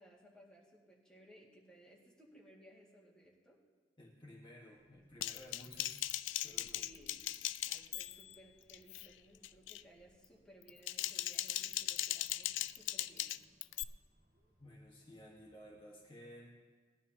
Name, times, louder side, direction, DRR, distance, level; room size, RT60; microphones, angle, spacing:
voice 1, 0.0-3.6 6.7-7.2 7.6-13.3, right 1 dB, 5° left, -6 dB, 2.0 m, -61 dB
voice 2, 4.0-6.1 6.4-6.8 14.6-16.6, equal, 25° left, -4 dB, 1.4 m, -55 dB
sound 1, 4.7-15.7, equal, 25° right, 4.5 m, -72 dB
Typing, 5.2-8.4 8.7-9.1 9.4-9.8 10.6-13.8, left 14 dB, 85° left, 0.3 m, -39 dB
19.5 x 11.0 x 2.8 m, 1.5 s
head